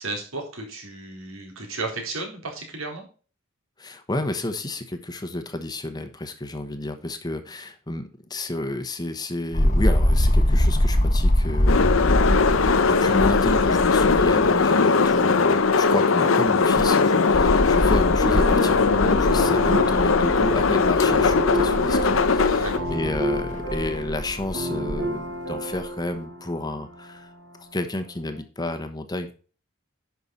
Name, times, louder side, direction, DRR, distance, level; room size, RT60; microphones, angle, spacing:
voice 1, 0.0-3.1 22.5-22.9, right 3 dB, 80° right, 1 dB, 4.0 m, -34 dB
voice 2, 3.8-12.0 12.9-27.3 27.6-29.3, left 1 dB, 20° left, 8 dB, 1.1 m, -31 dB
sound 1, 9.5-14.6 15.0-15.1 16.5-25.0 25.8-25.9, left 1 dB, 35° left, 1.4 m, -24 dB
sound 2, 11.7-22.8, left 4 dB, 75° left, 0.8 m, -20 dB
sound 3, 18.2-28.4, equal, 60° right, 3.8 m, -31 dB
11.0 x 5.9 x 4.1 m, 0.38 s
head